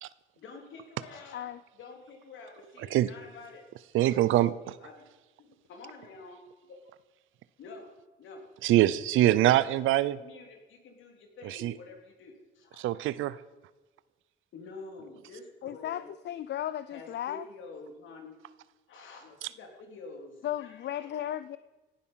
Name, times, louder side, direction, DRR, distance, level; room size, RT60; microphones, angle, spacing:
voice 1, 0.4-1.5 1.8-3.6 4.0-4.4 4.8-5.1 5.4-6.8 7.6-7.9 8.2-8.5 9.1-9.7 10.1-12.8 14.5-16.1 16.9-18.4 18.9-21.4, left 3 dB, 75° left, 3 dB, 3.4 m, -48 dB
voice 2, 3.9-4.8 8.6-10.2 11.4-11.7 12.8-13.4, right 14 dB, 85° right, 17 dB, 0.7 m, -24 dB
voice 3, 15.6-17.4 20.4-21.6, left 11 dB, 60° left, 15 dB, 0.5 m, -35 dB
17.5 x 12.0 x 5.7 m, 1.2 s
cardioid pair, 90°, 20 cm